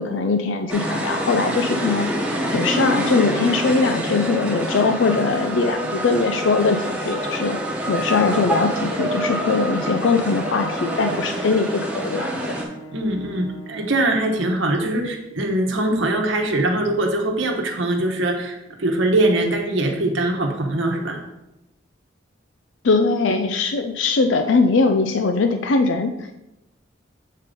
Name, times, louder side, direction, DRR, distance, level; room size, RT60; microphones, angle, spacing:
voice 1, 0.0-2.1 2.5-7.6 7.9-12.4 22.8-26.3, left 4 dB, 75° left, 7 dB, 0.4 m, -21 dB
sound 1, 0.7-12.6, equal, 5° right, 1.0 m, -26 dB
Bowed string instrument, 10.0-14.2, right 2 dB, 30° left, 1.2 m, -41 dB
voice 2, 12.9-21.2, right 1 dB, 80° right, 1 dB, 1.1 m, -22 dB
7.4 x 3.7 x 5.1 m, 0.92 s
head